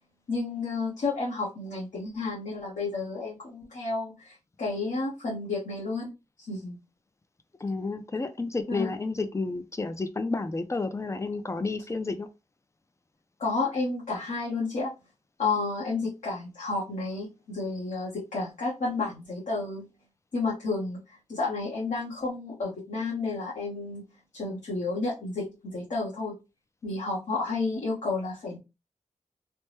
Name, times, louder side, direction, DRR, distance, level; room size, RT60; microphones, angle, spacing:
voice 1, 0.3-6.1 6.4-6.8 8.7-8.9 13.4-14.9 15.4-19.9 20.3-24.0 24.3-26.3 26.8-28.6, left 3 dB, 75° left, 1.1 m, -31 dB
voice 2, 7.6-12.3, left 3 dB, 25° left, 0.4 m, -31 dB
3.3 x 2.1 x 3.1 m
wide cardioid pair, 110°, 13 cm